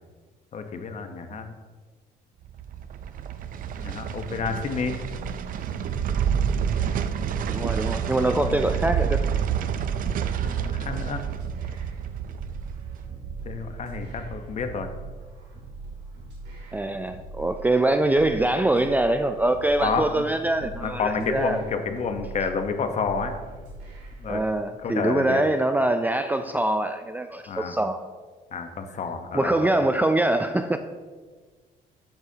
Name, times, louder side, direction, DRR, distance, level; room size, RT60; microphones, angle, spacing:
voice 1, 0.5-1.5 3.8-5.0 10.4-11.2 13.4-14.9 19.8-20.2 20.6-23.3 24.2-24.4 24.8-25.4 27.5-27.7 28.5-29.8, left 5 dB, 45° left, 7 dB, 1.0 m, -29 dB
sound 1, 2.4-15.6 15.9-16.0, right 8 dB, 55° right, 0.6 m, -29 dB
sound 2, 4.8-24.4, right 2 dB, 85° right, 2.9 m, -42 dB
sound 3, 5.4-6.3 7.8-9.0, left 4 dB, 65° left, 1.4 m, -40 dB
voice 2, 7.5-9.2 16.7-21.6 24.3-28.0 29.3-30.8, right 2 dB, 10° right, 8 dB, 0.4 m, -24 dB
12.5 x 8.9 x 2.8 m, 1.4 s
cardioid pair, 110°, 17 cm